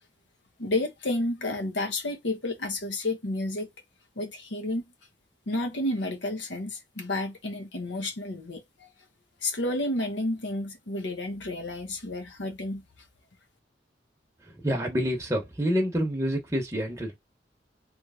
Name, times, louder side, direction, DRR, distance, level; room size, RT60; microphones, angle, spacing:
voice 1, 0.6-3.7 4.2-4.8 5.5-8.9 9.4-12.8, left 2 dB, 80° left, 1.1 m, -31 dB
voice 2, 14.6-17.2, equal, 15° right, 0.9 m, -27 dB
3.2 x 3.2 x 3.6 m
head